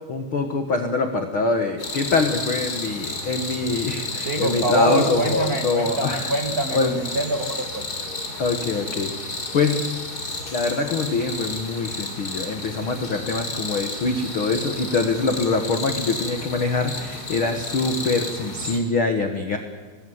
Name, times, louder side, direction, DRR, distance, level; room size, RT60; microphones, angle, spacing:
voice 1, 0.1-6.3 6.7-7.0 8.4-9.9 10.5-19.6, left 3 dB, 85° left, 5 dB, 1.1 m, -24 dB
sound 1, 1.8-18.8, left 2 dB, 25° left, 3.6 m, -32 dB
voice 2, 4.2-7.8, right 1 dB, 80° right, 4 dB, 0.8 m, -25 dB
29.0 x 20.0 x 8.0 m, 1.5 s
omnidirectional pair, 5.0 m